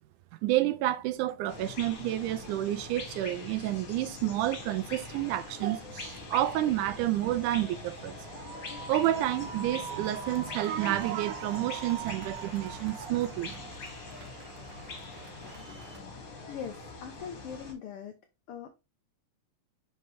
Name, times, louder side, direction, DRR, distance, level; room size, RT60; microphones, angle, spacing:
voice 1, 0.4-8.1 8.9-13.6, right 14 dB, 90° right, 2.2 m, -29 dB
sound 1, 1.5-17.7, left 3 dB, 50° left, 2.6 m, -43 dB
sound 2, 7.3-16.0, right 6 dB, 60° right, 1.2 m, -44 dB
voice 2, 16.5-18.2 18.5-18.7, left 7 dB, 80° left, 1.3 m, -41 dB
5.8 x 5.3 x 3.1 m
omnidirectional pair, 3.5 m